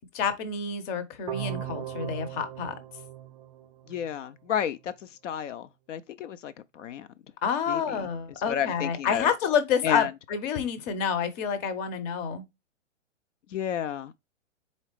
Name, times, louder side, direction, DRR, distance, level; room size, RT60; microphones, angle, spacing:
voice 1, 0.1-2.7 7.4-12.4, left 7 dB, 25° left, 0.7 m, -28 dB
sound 1, 1.3-4.2, right 11 dB, 35° right, 0.4 m, -38 dB
voice 2, 3.9-7.1 7.7-8.1 8.5-9.3 9.8-10.1 13.5-14.1, left 9 dB, 70° left, 0.5 m, -32 dB
4.1 x 3.8 x 3.2 m
hypercardioid pair, 130°, 38 cm